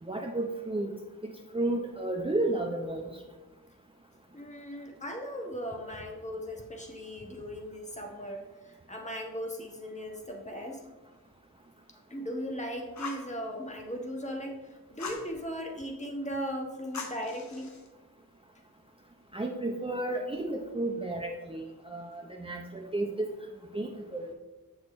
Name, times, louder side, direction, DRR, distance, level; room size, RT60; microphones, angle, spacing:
voice 1, 0.0-0.9 1.2-3.1 19.3-23.3 23.7-24.3, right 2 dB, 15° right, 0 dB, 0.7 m, -32 dB
voice 2, 4.3-10.8 12.1-17.7, equal, 20° left, 1 dB, 1.4 m, -38 dB
Fire, 12.9-13.3 15.0-15.3 16.9-17.9, left 4 dB, 50° left, 1.0 m, -40 dB
6.7 x 6.3 x 3.2 m, 1.2 s
cardioid pair, 60°, 36 cm